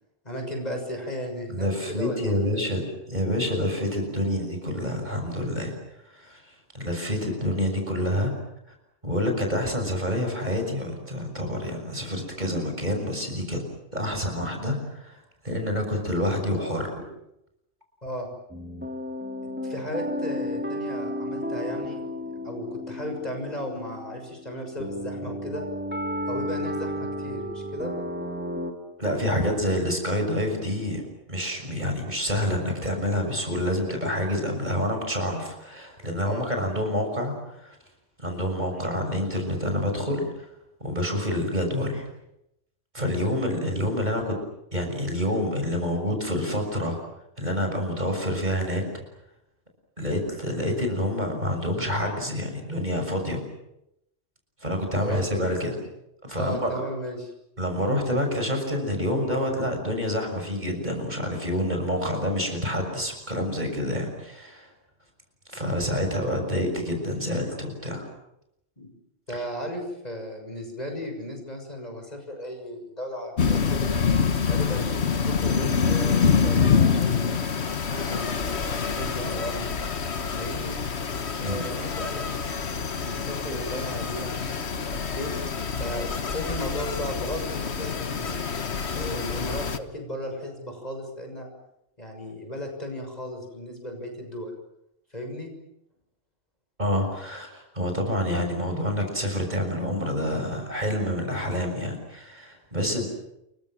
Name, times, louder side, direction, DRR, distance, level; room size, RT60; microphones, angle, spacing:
voice 1, 0.2-2.7 18.0-18.3 19.6-22.0 22.4-25.6 26.3-27.9 36.2-36.5 43.0-43.2 54.9-55.5 56.4-57.3 68.8-68.9 69.3-73.9 74.5-77.4 77.9-79.8 80.4-80.8 81.4-82.4 83.0-85.3 85.8-88.5 88.9-91.5 92.0-94.5 95.1-95.5, left 1 dB, 35° left, 3 dB, 6.8 m, -35 dB
voice 2, 1.5-5.7 6.0-6.4 6.7-8.3 9.0-13.6 13.9-15.2 15.4-17.0 29.0-31.0 31.3-37.8 38.2-40.5 40.8-42.1 42.9-44.3 44.7-47.0 47.4-49.0 50.0-53.4 54.6-55.8 56.2-56.8 57.6-64.7 65.5-68.0 81.4-81.7 96.8-103.1, equal, 35° right, 3 dB, 6.6 m, -27 dB
sound 1, 18.5-28.7, equal, 10° right, 3.4 m, -33 dB
sound 2, 73.4-89.8, left 6 dB, 60° left, 1.6 m, -26 dB
29.5 x 23.5 x 7.6 m, 0.82 s
omnidirectional pair, 1.3 m